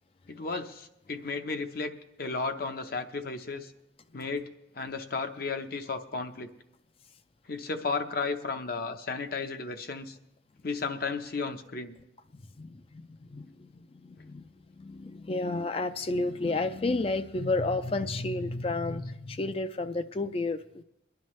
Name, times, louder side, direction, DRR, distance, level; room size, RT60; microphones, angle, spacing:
voice 1, 0.3-3.7 4.1-4.5 4.7-6.5 7.5-10.2 10.6-12.0, left 4 dB, 50° left, 8 dB, 0.8 m, -34 dB
voice 2, 12.3-14.5 14.8-20.8, left 2 dB, 30° left, 10 dB, 0.4 m, -31 dB
23.0 x 10.5 x 3.2 m, 0.85 s
head